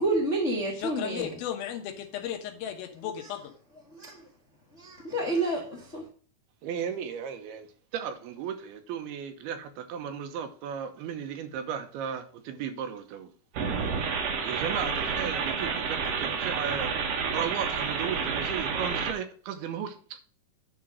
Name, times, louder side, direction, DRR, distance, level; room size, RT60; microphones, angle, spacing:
voice 1, 0.0-1.3 3.9-4.2 4.7-6.1, right 2 dB, 50° left, -2 dB, 0.8 m, -29 dB
voice 2, 0.7-3.5, left 9 dB, 80° left, 5 dB, 2.9 m, -35 dB
voice 3, 6.6-7.7 7.9-13.3 14.4-16.9 17.3-20.2, right 8 dB, 85° right, 7 dB, 2.9 m, -35 dB
sound 1, 13.5-19.1, right 5 dB, 65° right, 1.7 m, -30 dB
10.0 x 3.9 x 6.2 m, 0.42 s
omnidirectional pair, 4.3 m